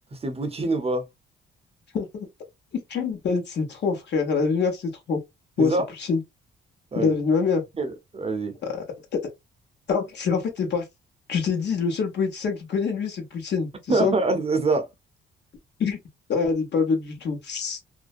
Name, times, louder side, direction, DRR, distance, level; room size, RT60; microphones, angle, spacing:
voice 1, 0.1-1.1 5.6-5.8 6.9-7.1 7.7-8.6 13.9-14.9, right 3 dB, 30° right, 0.6 m, -25 dB
voice 2, 1.9-2.3 2.7-5.2 5.6-5.7 6.1-6.2 6.9-7.6 8.6-8.8 9.9-10.8 11.3-14.1 15.8-16.0 16.3-17.8, left 5 dB, 60° left, 1.1 m, -25 dB
2.5 x 2.1 x 2.4 m
cardioid pair, 90°, 20 cm